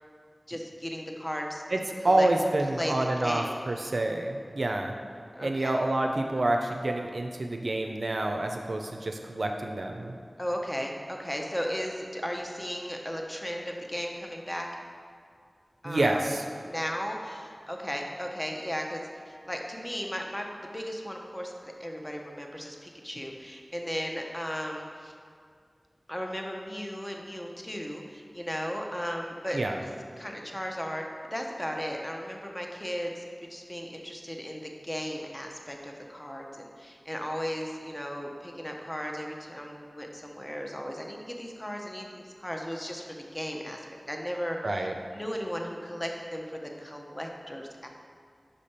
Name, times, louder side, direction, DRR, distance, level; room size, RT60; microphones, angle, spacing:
voice 1, 0.5-1.6 2.0-2.3 2.7-3.7 5.3-5.8 10.4-14.7 15.8-16.2 16.6-19.0 19.3-20.5 20.7-25.1 26.1-29.6 30.2-31.0 31.3-33.2 33.5-43.1 43.3-47.9, equal, 15° left, 1 dB, 0.7 m, -36 dB
voice 2, 2.0-5.0 5.4-10.2 15.8-16.4 29.5-29.8 44.6-44.9, right 2 dB, 75° right, 3 dB, 0.4 m, -28 dB
5.5 x 5.0 x 4.3 m, 2.2 s
wide cardioid pair, 55°, 0 cm